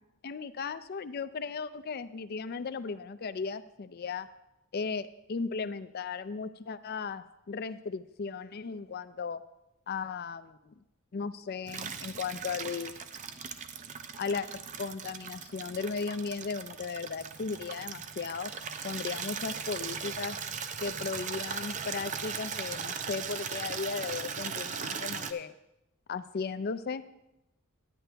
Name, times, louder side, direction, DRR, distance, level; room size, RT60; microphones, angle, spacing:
voice 1, 0.2-4.3 4.7-9.4 9.9-10.7 11.1-12.9 14.2-18.5 18.8-20.4 20.8-25.5 26.1-27.0, left 5 dB, 45° left, 13 dB, 0.4 m, -36 dB
Water tap faucet / Liquid, 11.7-25.3, right 6 dB, 35° right, 0.5 m, -38 dB
10.5 x 9.9 x 3.4 m, 0.91 s
head